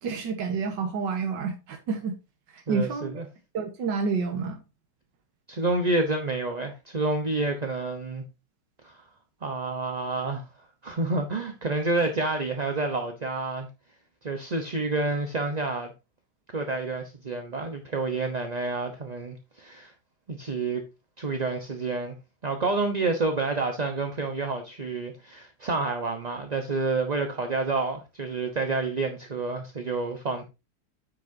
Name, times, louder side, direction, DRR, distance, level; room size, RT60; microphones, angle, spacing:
voice 1, 0.0-2.1 2.5-3.1 3.5-4.6, right 5 dB, 85° right, 1.9 m, -29 dB
voice 2, 2.7-3.3 5.5-8.2 8.8-9.0 9.4-13.7 14.2-15.9 16.5-19.9 20.3-20.8 21.2-22.2 22.4-30.4, right 3 dB, 30° right, 0.8 m, -29 dB
9.6 x 8.3 x 2.7 m
omnidirectional pair, 1.9 m